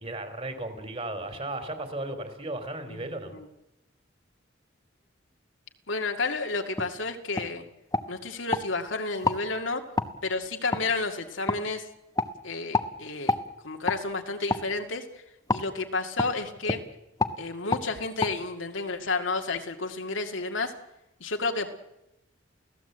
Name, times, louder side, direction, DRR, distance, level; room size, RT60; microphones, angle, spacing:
voice 1, 0.0-3.3, right 2 dB, 30° right, 8 dB, 3.3 m, -35 dB
voice 2, 2.9-3.5 5.9-7.6 8.1-9.8 10.2-11.9 12.4-13.4 13.6-15.2 15.5-16.8 17.4-20.7 21.2-21.7, left 3 dB, 80° left, 4 dB, 2.1 m, -31 dB
sound 1, 6.8-6.9 7.4-7.5 7.9-8.7 9.2-9.4 10.0-10.1 10.7-10.8 11.5-11.6 12.2-12.3 12.7-12.9 13.3-13.4 13.9-14.0 14.5-14.7 15.5-15.7 16.2-16.3 16.6-16.8 17.2-17.4 17.7-17.9 18.2-18.3, left 3 dB, 20° left, 1.0 m, -27 dB
29.0 x 16.5 x 8.0 m, 0.91 s
head